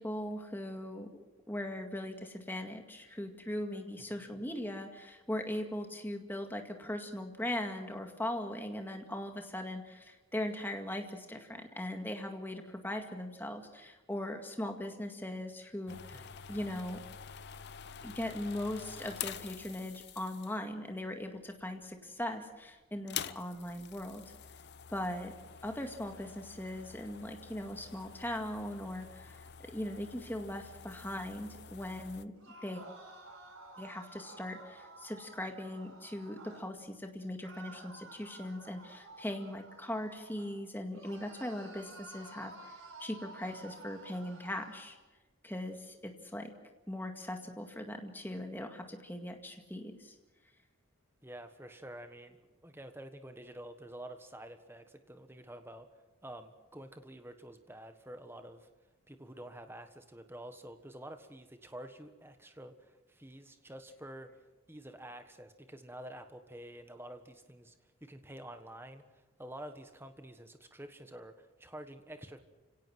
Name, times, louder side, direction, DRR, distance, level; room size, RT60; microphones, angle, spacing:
voice 1, 0.0-17.0 18.0-24.2 24.9-25.3 25.6-32.3 32.6-32.8 33.8-45.0 45.4-46.5 46.9-50.1, left 1 dB, 10° left, 4 dB, 2.0 m, -40 dB
sound 1, 15.9-20.8 21.6-22.0 22.3-22.4 22.9-32.3, left 8 dB, 50° left, 0.7 m, -47 dB
voice 2, 16.1-16.5 51.2-52.4 52.6-55.9 56.2-58.7 59.1-64.4 64.7-67.7 68.0-72.4, right 1 dB, 10° right, 7 dB, 1.4 m, -49 dB
sound 2, 32.3-36.7 37.4-40.6 40.9-44.9, right 2 dB, 65° right, 5.1 m, -52 dB
29.5 x 17.0 x 6.2 m, 1.2 s
head